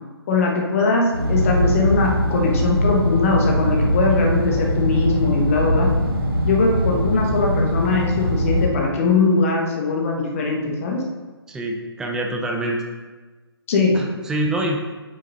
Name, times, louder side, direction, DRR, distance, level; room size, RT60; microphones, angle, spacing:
voice 1, 0.3-5.9 6.4-11.0 13.7-14.0, left 3 dB, 30° left, 0 dB, 1.5 m, -20 dB
sound 1, 1.1-8.7, equal, 60° right, 1.6 m, -21 dB
voice 2, 11.5-12.8 13.9-14.8, right 1 dB, 5° right, 1 dB, 0.6 m, -25 dB
7.4 x 6.2 x 4.1 m, 1.3 s
figure-of-eight pair, 140°, 14 cm